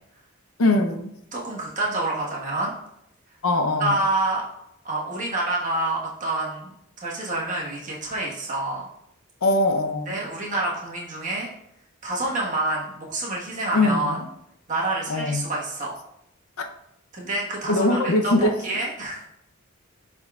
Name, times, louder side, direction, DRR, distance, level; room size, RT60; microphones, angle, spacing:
voice 1, 0.6-1.1 3.4-4.0 9.4-10.2 13.7-14.3 15.1-15.4 16.6-16.7 17.7-18.6, left 2 dB, 90° left, 4 dB, 0.7 m, -22 dB
voice 2, 1.3-2.7 3.8-4.4 4.8-6.7 7.0-8.9 10.1-11.5 12.0-14.2 14.7-16.0 17.1-19.3, right 2 dB, 35° right, -4 dB, 1.4 m, -27 dB
10.5 x 3.7 x 2.4 m, 0.78 s
head